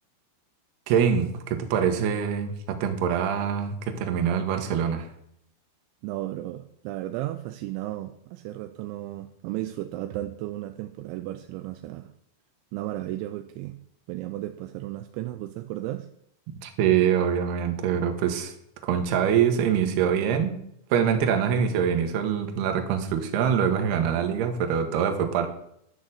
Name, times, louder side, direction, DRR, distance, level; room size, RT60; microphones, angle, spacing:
voice 1, 0.9-5.1 16.6-18.5 18.8-20.6 20.9-25.5, right 8 dB, 65° right, 5 dB, 2.8 m, -24 dB
voice 2, 6.0-12.1 12.7-13.8 14.1-16.1, right 15 dB, 85° right, 9 dB, 2.6 m, -34 dB
11.0 x 6.4 x 8.0 m, 0.74 s
omnidirectional pair, 5.8 m